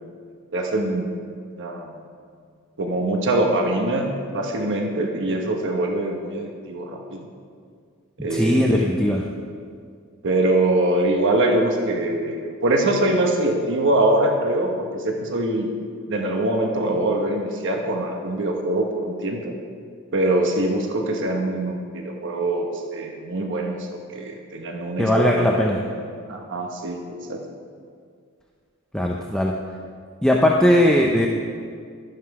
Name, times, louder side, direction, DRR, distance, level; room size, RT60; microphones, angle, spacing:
voice 1, 0.5-1.1 1.6-2.0 2.8-7.3 8.2-8.9 10.2-15.7 16.1-19.6 20.1-23.9 24.1-27.4, right 1 dB, 60° right, 2 dB, 1.1 m, -23 dB
voice 2, 8.3-9.2 25.0-25.8 28.9-29.5 30.2-31.3, left 1 dB, 5° left, -1 dB, 0.6 m, -19 dB
12.0 x 11.5 x 4.8 m, 2.2 s
head